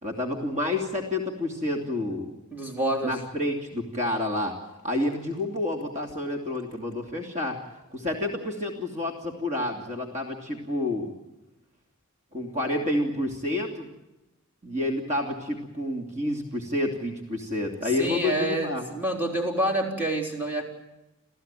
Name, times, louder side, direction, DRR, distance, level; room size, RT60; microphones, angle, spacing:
voice 1, 0.0-2.3 3.0-4.5 4.8-7.6 7.9-11.1 12.3-13.9 14.6-18.9, left 1 dB, 35° right, 2 dB, 2.9 m, -29 dB
voice 2, 2.5-3.2 18.0-20.7, right 1 dB, 10° right, 0 dB, 3.8 m, -27 dB
28.5 x 15.0 x 9.2 m, 0.98 s
head